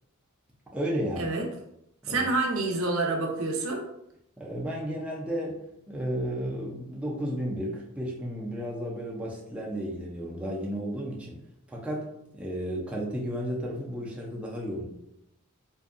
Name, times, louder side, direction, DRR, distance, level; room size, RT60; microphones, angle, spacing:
voice 1, 0.7-1.3 2.0-2.3 4.4-11.4 11.7-14.8, equal, 5° right, -3 dB, 0.4 m, -33 dB
voice 2, 2.1-3.8, right 2 dB, 75° right, 2 dB, 0.5 m, -27 dB
2.6 x 2.2 x 2.4 m, 0.78 s
head